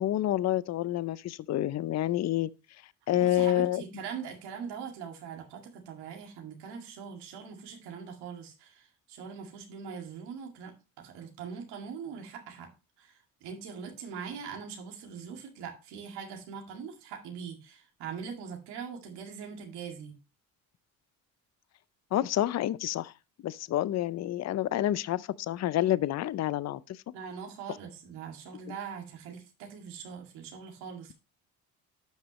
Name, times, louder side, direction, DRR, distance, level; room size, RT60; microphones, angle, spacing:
voice 1, 0.0-2.5 3.1-3.8 22.1-23.1 23.4-27.0, left 13 dB, 45° left, 0.5 m, -28 dB
voice 2, 3.1-12.7 13.0-20.1 27.1-31.1, right 6 dB, 85° right, 2.2 m, -42 dB
11.5 x 6.0 x 3.0 m
supercardioid pair, 75°, 39 cm